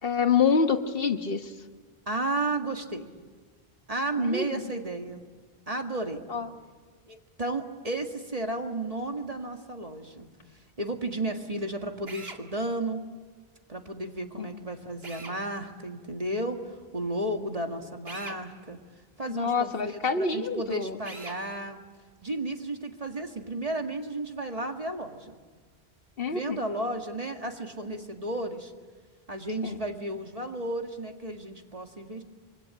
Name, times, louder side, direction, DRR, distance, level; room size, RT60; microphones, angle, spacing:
voice 1, 0.0-1.5 4.2-4.6 6.3-6.5 14.4-14.5 19.3-21.0 26.2-26.6 29.6-29.8, left 5 dB, 60° left, 8 dB, 1.5 m, -26 dB
voice 2, 2.1-3.1 3.9-5.2 5.7-6.2 7.1-10.3 10.5-13.0 13.7-18.8 19.2-21.8 22.2-25.3 26.3-28.7 29.3-32.2, right 2 dB, 35° right, 4 dB, 1.9 m, -33 dB
Drill, 12.1-12.4 15.0-15.4 18.1-18.4 21.0-21.4, right 3 dB, 70° right, 2.2 m, -41 dB
25.5 x 24.5 x 8.8 m, 1.4 s
omnidirectional pair, 1.1 m